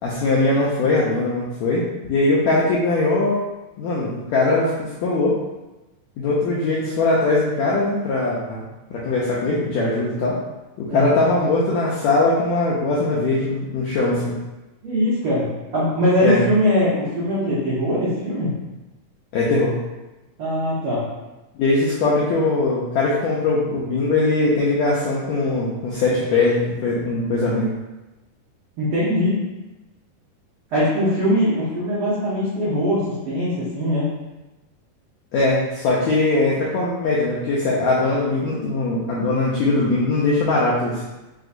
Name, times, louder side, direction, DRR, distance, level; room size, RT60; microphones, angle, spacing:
voice 1, 0.0-3.4 3.8-5.3 6.2-8.6 8.9-10.4 10.8-14.4 16.2-16.4 19.3-19.8 21.5-27.7 35.3-41.0, left 2 dB, 90° left, -6 dB, 1.5 m, -21 dB
voice 2, 10.9-11.2 14.8-15.5 15.7-18.5 20.4-21.0 28.8-29.4 30.7-34.1, equal, 75° right, -9 dB, 1.2 m, -21 dB
6.1 x 2.8 x 2.5 m, 1.1 s
omnidirectional pair, 3.9 m